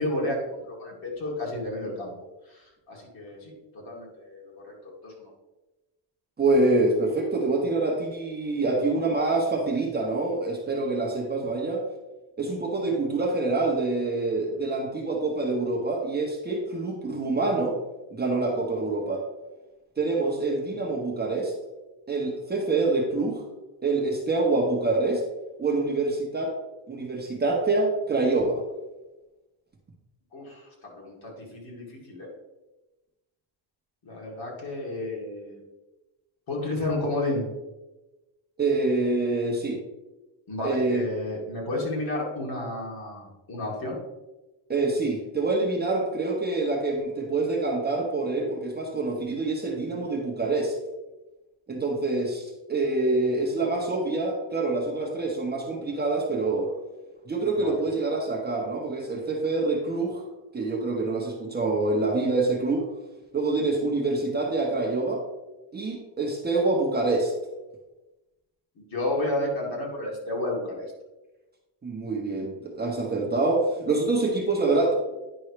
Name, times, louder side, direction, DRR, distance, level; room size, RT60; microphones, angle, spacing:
voice 1, 0.0-2.1 2.5-5.3 18.4-18.5 30.3-32.3 34.0-35.6 36.5-37.4 40.5-44.0 57.5-57.8 68.8-70.9, left 1 dB, 45° left, -3 dB, 2.7 m, -32 dB
voice 2, 6.4-11.8 12.4-17.8 18.1-19.3 20.0-21.5 22.1-23.4 23.8-25.2 25.6-26.5 26.9-28.6 38.6-39.8 40.6-41.0 44.7-50.7 51.7-56.7 57.3-60.2 60.5-62.9 63.3-65.2 65.7-67.3 71.8-74.9, right 3 dB, 20° right, -2 dB, 1.2 m, -26 dB
10.0 x 5.4 x 3.3 m, 1.1 s
cardioid pair, 160°, 49 cm